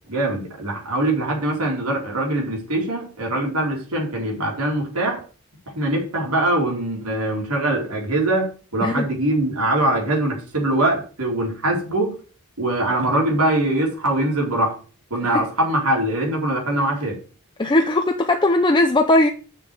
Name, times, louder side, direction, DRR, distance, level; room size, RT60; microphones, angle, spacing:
voice 1, 0.1-5.2 5.7-12.1 12.6-14.8 15.1-17.1, right 1 dB, 85° right, 4.4 m, -22 dB
voice 2, 17.6-19.3, left 2 dB, 20° left, 0.6 m, -18 dB
7.3 x 6.5 x 6.7 m
head